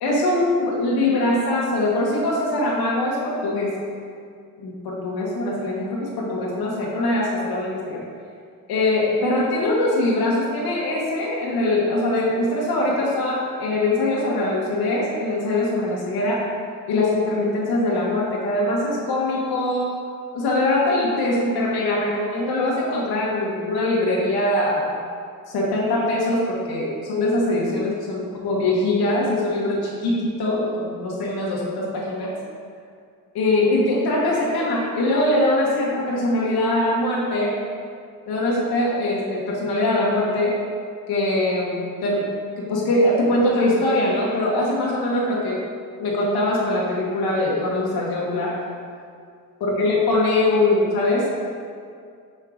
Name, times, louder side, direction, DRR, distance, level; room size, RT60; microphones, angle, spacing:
voice 1, 0.0-3.7 4.6-8.0 8.7-16.4 16.9-20.0 20.3-25.0 25.5-32.4 33.3-37.6 38.3-40.6 41.1-42.3 42.6-45.6 46.0-48.6 49.6-51.3, left 1 dB, 85° left, -4 dB, 1.2 m, -22 dB
6.5 x 4.5 x 3.7 m, 2.2 s
cardioid pair, 140°, 37 cm